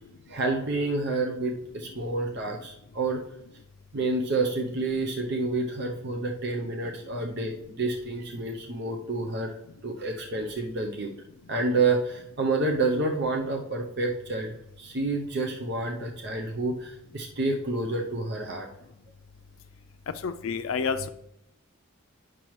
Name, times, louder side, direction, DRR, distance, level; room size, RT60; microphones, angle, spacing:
voice 1, 0.3-3.2 3.9-9.5 9.8-11.1 11.5-18.7, right 3 dB, 55° right, 2 dB, 0.7 m, -29 dB
voice 2, 20.2-21.1, left 5 dB, 90° left, 9 dB, 0.4 m, -29 dB
8.7 x 6.0 x 3.1 m, 0.79 s
head